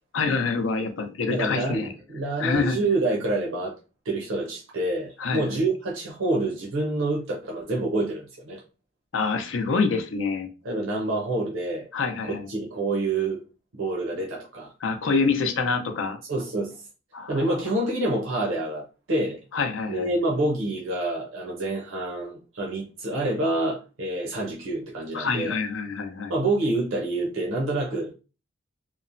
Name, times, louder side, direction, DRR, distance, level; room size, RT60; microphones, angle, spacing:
voice 1, 0.1-1.9 2.4-2.8 5.2-5.6 9.1-10.5 11.9-12.5 14.8-16.2 17.1-17.6 19.5-20.1 25.1-26.3, left 4 dB, 75° left, 0.5 m, -26 dB
voice 2, 1.3-3.7 4.1-8.6 10.6-11.9 12.3-13.4 13.7-14.7 16.3-16.8 17.3-19.4 19.9-25.6 26.3-28.1, right 2 dB, 90° right, 0.7 m, -27 dB
2.9 x 2.0 x 2.5 m
head